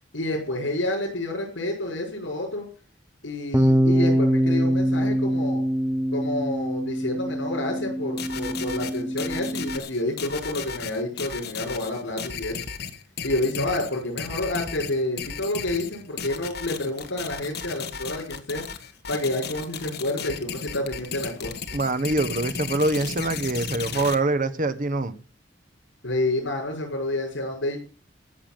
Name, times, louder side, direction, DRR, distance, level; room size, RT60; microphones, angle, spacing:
voice 1, 0.1-2.6 3.2-5.6 6.1-12.6 13.2-18.6 19.1-21.5 26.0-27.8, left 1 dB, 85° left, 6.2 m, -29 dB
Bass guitar, 3.5-9.8, equal, 15° right, 1.1 m, -24 dB
sound 1, 8.2-24.2, left 6 dB, 60° left, 1.7 m, -35 dB
voice 2, 21.7-25.2, right 2 dB, 45° right, 1.2 m, -24 dB
15.0 x 7.2 x 9.1 m
head